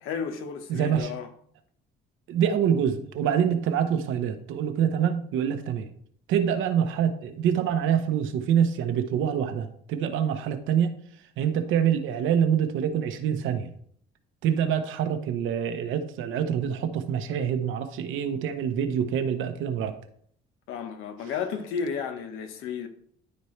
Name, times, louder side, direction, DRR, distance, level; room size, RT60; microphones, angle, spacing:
voice 1, 0.0-1.3 20.7-22.9, left 6 dB, 85° left, 1.2 m, -33 dB
voice 2, 0.7-1.1 2.3-5.9 6.3-10.9 11.4-13.7 14.4-20.0, right 8 dB, 75° right, 0.9 m, -25 dB
12.5 x 4.4 x 3.2 m
cardioid pair, 120°, 21 cm